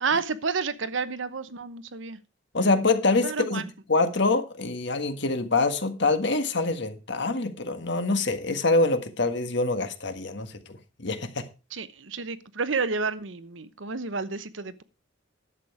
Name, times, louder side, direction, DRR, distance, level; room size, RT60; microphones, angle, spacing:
voice 1, 0.0-2.2 3.2-3.6 11.7-14.8, right 4 dB, 70° right, 14 dB, 0.9 m, -30 dB
voice 2, 2.5-11.5, left 3 dB, 60° left, 8 dB, 1.6 m, -25 dB
11.5 x 8.0 x 4.9 m, 0.31 s
head